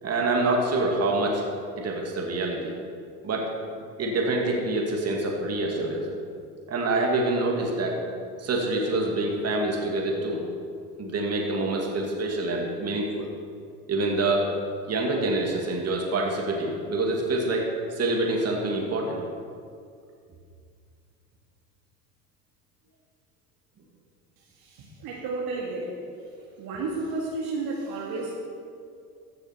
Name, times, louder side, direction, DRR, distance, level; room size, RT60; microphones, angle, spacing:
voice 1, 0.0-1.4 1.8-2.7 3.2-6.2 6.7-8.0 8.4-10.4 11.0-13.3 13.9-14.5 14.9-19.2, right 2 dB, 35° right, -1 dB, 2.3 m, -26 dB
voice 2, 24.6-26.3 26.6-28.4, right 3 dB, 50° right, -3 dB, 2.1 m, -32 dB
15.0 x 6.5 x 4.5 m, 2.3 s
hypercardioid pair, 75°, 46 cm